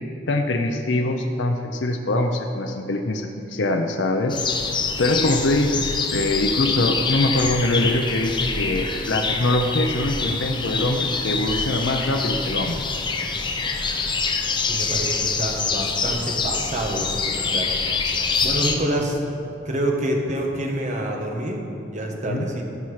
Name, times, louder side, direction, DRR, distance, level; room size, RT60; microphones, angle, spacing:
voice 1, 0.3-4.4 5.0-12.8 22.3-22.5, left 1 dB, 70° left, 3 dB, 0.7 m, -23 dB
sound 1, 4.3-18.8, left 4 dB, 25° left, 0.7 m, -25 dB
voice 2, 14.7-18.1 18.4-22.7, right 1 dB, 40° right, 1 dB, 1.2 m, -27 dB
14.5 x 5.8 x 4.9 m, 2.7 s
head